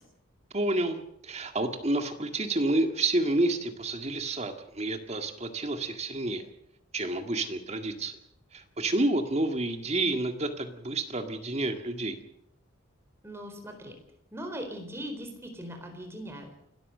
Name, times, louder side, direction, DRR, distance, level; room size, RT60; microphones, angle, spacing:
voice 1, 0.5-1.0 1.2-6.4 6.9-8.2 8.5-12.2, right 2 dB, 30° right, 6 dB, 2.0 m, -29 dB
voice 2, 13.2-14.0 14.3-16.6, equal, 10° right, 4 dB, 4.2 m, -40 dB
29.0 x 13.5 x 6.7 m, 0.74 s
head